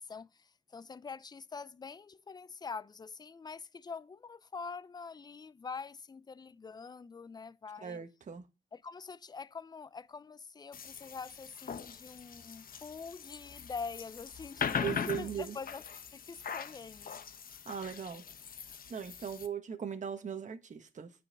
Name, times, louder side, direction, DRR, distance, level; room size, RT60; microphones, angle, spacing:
voice 1, 0.0-8.0 8.7-15.8 16.1-17.2, left 5 dB, 20° left, 0.5 m, -45 dB
voice 2, 7.8-8.5 14.8-15.6 17.6-18.2 18.9-21.1, right 8 dB, 40° right, 1.3 m, -39 dB
sound 1, 10.7-19.5, left 7 dB, 45° left, 1.0 m, -41 dB
9.5 x 5.5 x 6.5 m
cardioid pair, 90°, 20 cm